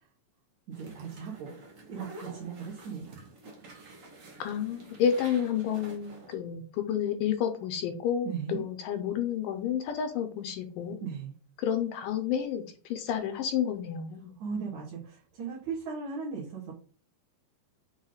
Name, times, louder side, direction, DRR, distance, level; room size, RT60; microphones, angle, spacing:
voice 1, 0.7-1.5 1.9-3.3 8.2-8.6 11.0-11.3 14.4-16.7, right 6 dB, 60° right, -6 dB, 2.8 m, -37 dB
sound 1, 0.7-6.3, right 2 dB, 85° right, 0.7 m, -49 dB
voice 2, 4.4-11.0 11.6-14.3, left 8 dB, 80° left, 8 dB, 2.3 m, -30 dB
7.2 x 3.5 x 3.9 m, 0.41 s
omnidirectional pair, 3.9 m